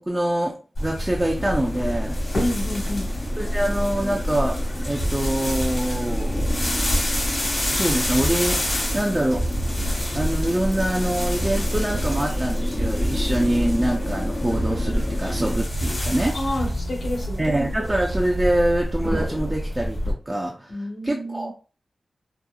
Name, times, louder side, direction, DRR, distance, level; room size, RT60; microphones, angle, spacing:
voice 1, 0.0-2.2 3.4-6.7 7.7-9.5 10.1-16.4 17.4-21.5, right 1 dB, 20° right, 0 dB, 0.4 m, -25 dB
sound 1, 0.8-20.1, equal, 55° left, 1.3 m, -28 dB
sound 2, 1.3-15.6, left 1 dB, 35° left, 0.5 m, -30 dB
voice 2, 2.4-3.1 16.3-17.5 20.7-21.5, left 1 dB, 75° left, -3 dB, 1.2 m, -29 dB
sound 3, 5.0-5.6 5.9-7.3 7.6-9.0 9.3-10.7 11.0-12.4 12.7-14.1 14.5-15.9 16.2-17.6 17.9-18.6, right 2 dB, 70° right, 0.6 m, -33 dB
2.8 x 2.0 x 2.3 m, 0.35 s
cardioid pair, 60°, 0 cm